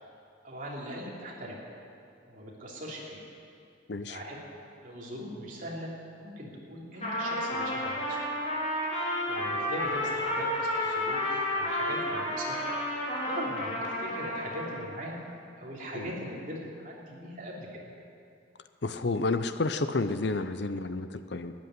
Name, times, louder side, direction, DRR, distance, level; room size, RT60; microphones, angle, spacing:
voice 1, 0.4-1.6 2.3-3.2 4.1-4.4 4.8-8.2 9.3-12.6 13.2-15.1 15.6-17.8, equal, 40° right, -4 dB, 3.2 m, -40 dB
Trumpet, 6.9-14.8, left 1 dB, 35° left, 3.7 m, -31 dB
voice 2, 18.8-21.5, left 3 dB, 55° left, 10 dB, 0.6 m, -30 dB
13.0 x 11.0 x 9.6 m, 2.5 s
head